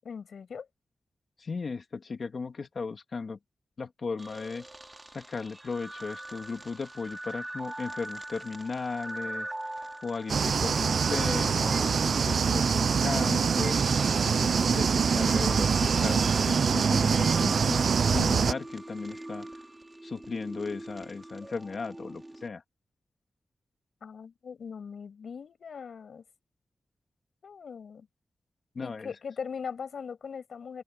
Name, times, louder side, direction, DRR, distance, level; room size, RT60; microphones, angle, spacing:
voice 1, 0.0-0.7 24.0-26.2 27.4-28.1 28.8-30.8, left 6 dB, 75° left, 6.2 m, -40 dB
voice 2, 1.4-3.4 3.8-4.7 5.1-9.5 10.0-13.8 14.2-19.5 20.0-22.6 28.8-29.1, left 4 dB, 50° left, 2.0 m, -36 dB
sound 1, 4.2-22.5, right 1 dB, 15° right, 2.4 m, -43 dB
sound 2, 10.3-18.5, right 6 dB, 65° right, 0.4 m, -24 dB
open air
wide cardioid pair, 130°, 0 cm